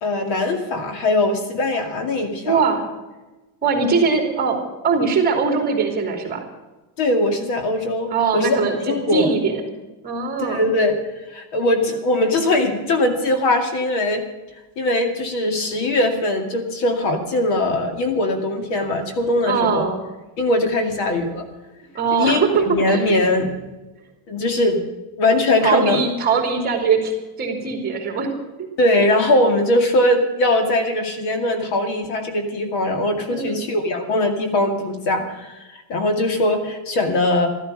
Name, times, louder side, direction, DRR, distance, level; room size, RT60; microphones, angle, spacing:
voice 1, 0.0-2.6 7.0-8.6 8.9-9.3 10.4-11.0 11.3-14.2 14.8-19.8 20.4-21.5 22.1-23.5 24.3-24.8 25.2-26.0 28.8-37.5, left 1 dB, 55° left, 6 dB, 2.4 m, -21 dB
voice 2, 2.4-2.8 3.6-4.6 4.8-6.4 8.1-9.6 10.0-10.6 19.4-20.0 21.9-23.2 25.6-27.1 27.4-28.3 28.6-28.7 33.3-33.7, right 5 dB, 20° right, 3 dB, 3.0 m, -21 dB
14.0 x 13.5 x 6.5 m, 1.1 s
cardioid pair, 180°, 48 cm